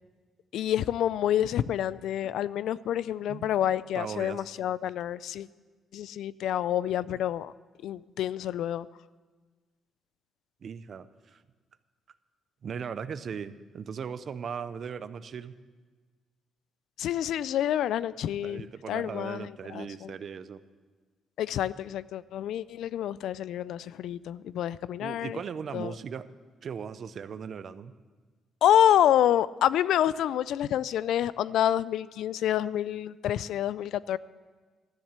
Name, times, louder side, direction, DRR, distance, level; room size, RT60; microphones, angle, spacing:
voice 1, 0.5-5.5 5.9-7.5 7.8-8.9 17.0-20.2 21.4-25.4 25.7-25.9 28.6-34.2, left 11 dB, 80° left, 18 dB, 0.3 m, -28 dB
voice 2, 3.9-4.4 10.6-11.4 12.6-15.5 18.4-20.6 25.0-26.3 26.6-27.9, right 7 dB, 55° right, 14 dB, 0.6 m, -38 dB
13.5 x 7.3 x 8.1 m, 1.4 s
cardioid pair, 90°, 0 cm